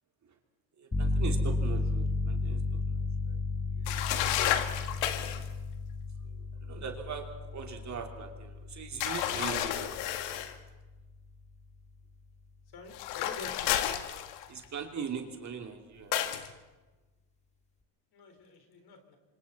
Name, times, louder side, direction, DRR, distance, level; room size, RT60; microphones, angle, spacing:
voice 1, 0.8-3.4 3.8-4.0 6.6-10.0 14.5-16.3, right 6 dB, 35° right, 3 dB, 2.8 m, -41 dB
sound 1, 0.9-11.4, left 3 dB, 15° left, 1.7 m, -34 dB
sound 2, 3.9-5.5 9.0-10.6 12.9-14.6 16.1-16.5, left 11 dB, 85° left, 1.9 m, -31 dB
voice 2, 12.7-13.8 18.1-19.2, left 4 dB, 50° left, 5 dB, 4.3 m, -47 dB
28.0 x 25.5 x 4.2 m, 1.2 s
supercardioid pair, 110°, 49 cm